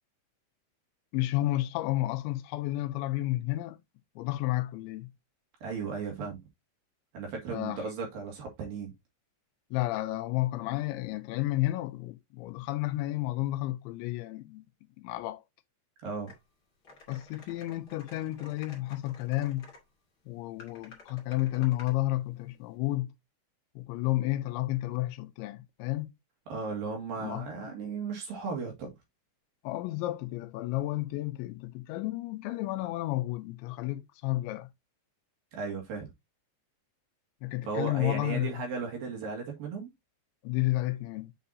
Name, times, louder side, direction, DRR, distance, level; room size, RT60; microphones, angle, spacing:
voice 1, 1.1-3.8 4.2-5.1 7.5-7.8 9.7-14.6 15.0-15.4 17.1-19.7 20.3-23.1 23.8-26.1 27.2-27.5 29.6-34.7 37.4-38.6 40.4-41.3, left 17 dB, 85° left, 3.1 m, -31 dB
voice 2, 5.6-6.4 7.1-8.9 16.0-16.3 26.5-28.9 35.5-36.1 37.7-39.9, right 5 dB, 60° right, 3.2 m, -36 dB
sound 1, 16.3-16.4 16.8-19.8 20.6-22.0, left 3 dB, 35° left, 1.9 m, -52 dB
7.2 x 5.7 x 2.7 m
omnidirectional pair, 5.2 m